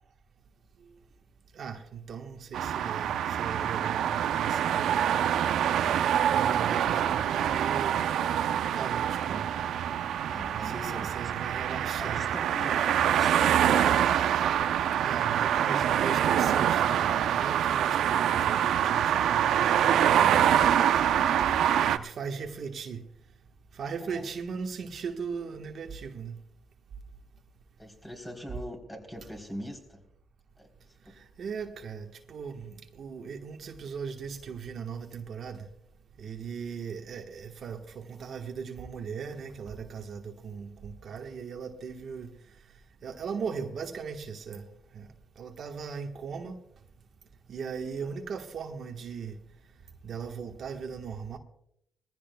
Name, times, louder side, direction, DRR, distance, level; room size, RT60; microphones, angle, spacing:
voice 1, 1.5-5.0 5.7-6.0 6.3-8.0 8.7-9.5 10.5-12.2 15.0-20.7 21.4-21.5 21.9-23.0 23.7-26.4 31.1-35.7 36.2-42.3 43.0-44.7 44.9-45.1 45.4-46.6 47.5-49.4 50.0-51.4, right 6 dB, 60° right, 1.3 m, -38 dB
sound 1, 2.5-22.0, right 10 dB, 75° right, 0.7 m, -25 dB
voice 2, 10.3-11.3 12.0-13.9 24.1-24.2 27.8-30.0 30.6-30.7 31.0-31.2 48.0-48.1, equal, 10° left, 3.7 m, -42 dB
21.5 x 15.0 x 2.3 m
cardioid pair, 90°, 0 cm